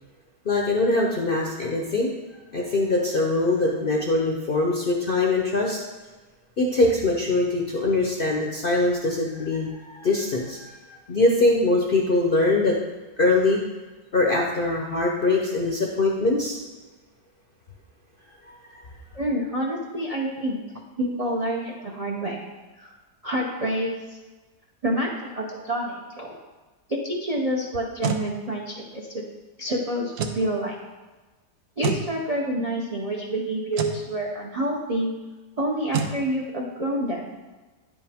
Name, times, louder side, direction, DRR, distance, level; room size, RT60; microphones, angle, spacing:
voice 1, 0.4-2.1 2.5-5.8 6.6-12.7 13.2-13.6 14.1-16.6 18.7-18.8, left 2 dB, 50° left, -1 dB, 0.7 m, -22 dB
voice 2, 19.1-20.6 21.0-22.5 22.8-22.9 23.2-24.2 24.8-26.4 26.9-29.2 29.6-30.8 31.8-35.1 35.6-37.2, right 1 dB, 45° right, -1 dB, 0.4 m, -28 dB
sound 1, 27.7-28.3 30.1-30.4 31.8-32.1 33.7-34.0 35.9-36.2, right 6 dB, 70° right, 0.8 m, -27 dB
9.8 x 5.4 x 3.5 m, 1.2 s
omnidirectional pair, 1.9 m